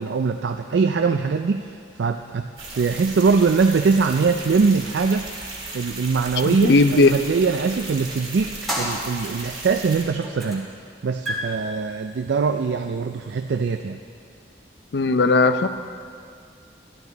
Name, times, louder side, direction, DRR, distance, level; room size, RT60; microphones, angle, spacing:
voice 1, 0.0-1.7 2.0-2.5 2.7-5.3 5.7-10.7 11.0-14.0, right 5 dB, 75° right, 6 dB, 0.4 m, -22 dB
sound 1, 2.6-10.0, right 2 dB, 25° right, 2.0 m, -36 dB
voice 2, 6.4-7.1 14.9-15.7, left 3 dB, 65° left, 10 dB, 0.5 m, -17 dB
sound 2, 8.7-9.7 10.2-10.7 11.0-13.8, equal, ahead, 1.7 m, -32 dB
12.5 x 12.0 x 4.0 m, 2.3 s
head